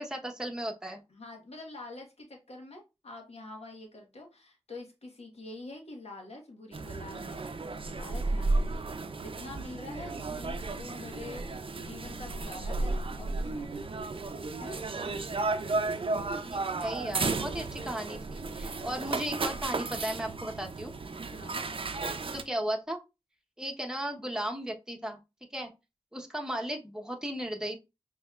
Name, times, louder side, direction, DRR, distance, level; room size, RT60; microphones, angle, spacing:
voice 1, 0.0-1.0 16.4-20.9 22.3-23.0 23.6-25.2 25.5-25.7 26.1-27.8, right 1 dB, 5° right, 1.0 m, -35 dB
voice 2, 1.1-7.4 7.9-14.0 14.6-14.8 21.3-21.7, left 2 dB, 70° left, 1.3 m, -46 dB
sound 1, 6.7-22.4, right 3 dB, 55° right, 0.5 m, -33 dB
5.3 x 3.0 x 2.4 m
cardioid pair, 40°, 11 cm